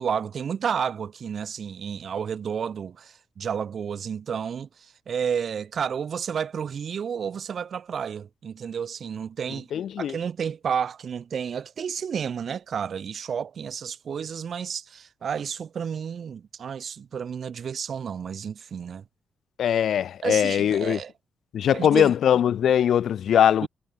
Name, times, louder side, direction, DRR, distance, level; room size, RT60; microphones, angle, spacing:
voice 1, 0.0-4.7 5.1-9.7 10.0-19.0 20.2-21.1 21.7-22.1 23.6-23.7, right 7 dB, 65° right, 2.1 m, -31 dB
voice 2, 9.7-10.2 19.6-21.0 21.5-23.7, left 9 dB, 75° left, 2.3 m, -21 dB
cardioid pair, 60°, 0 cm